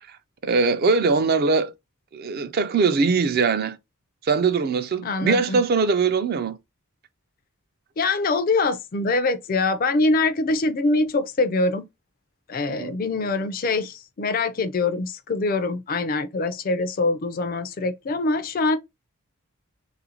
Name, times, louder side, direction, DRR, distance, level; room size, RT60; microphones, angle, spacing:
voice 1, 0.4-1.7 2.1-3.8 4.2-6.6 12.7-13.0, right 4 dB, 45° right, 0.3 m, -21 dB
voice 2, 5.0-5.6 8.0-11.9 12.5-18.8, left 3 dB, 40° left, 0.3 m, -24 dB
3.3 x 2.5 x 2.8 m
head